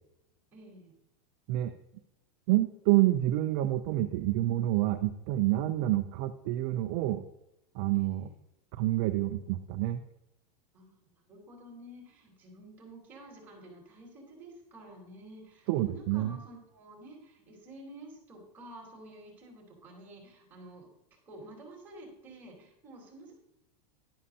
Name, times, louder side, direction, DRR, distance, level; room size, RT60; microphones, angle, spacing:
voice 1, 0.5-0.9 7.9-8.4 10.7-20.9 21.3-23.3, right 1 dB, 10° right, -4 dB, 4.1 m, -50 dB
voice 2, 2.5-7.2 7.7-8.3 8.8-10.0 15.7-16.3, right 15 dB, 35° right, 7 dB, 0.5 m, -28 dB
12.5 x 11.0 x 2.8 m, 0.87 s
supercardioid pair, 175°, 21 cm